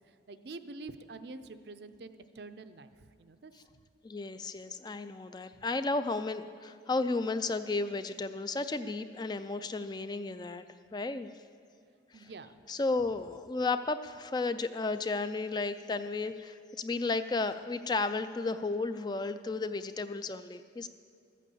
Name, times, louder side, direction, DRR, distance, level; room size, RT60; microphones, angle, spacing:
voice 1, 0.0-3.8 12.1-12.6, right 3 dB, 60° right, 10 dB, 0.6 m, -47 dB
voice 2, 4.0-10.6 10.9-11.3 12.1-12.3 12.7-20.9, left 3 dB, 20° left, 11 dB, 0.3 m, -33 dB
14.0 x 8.4 x 6.9 m, 2.2 s
head